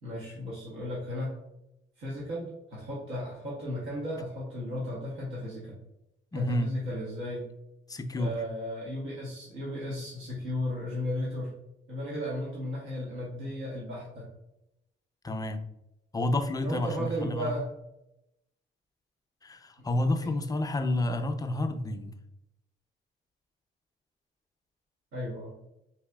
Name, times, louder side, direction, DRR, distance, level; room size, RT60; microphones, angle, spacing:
voice 1, 0.0-1.3 2.0-5.8 6.3-7.5 8.1-11.5 11.9-14.3 16.6-17.7 20.2-20.3 25.1-25.6, left 1 dB, 90° right, -5 dB, 1.1 m, -35 dB
voice 2, 6.3-6.7 7.9-8.3 15.2-15.6 16.1-17.5 19.4-22.1, left 1 dB, 20° left, 7 dB, 0.4 m, -30 dB
4.7 x 2.9 x 2.2 m, 0.87 s
cardioid pair, 90°, 20 cm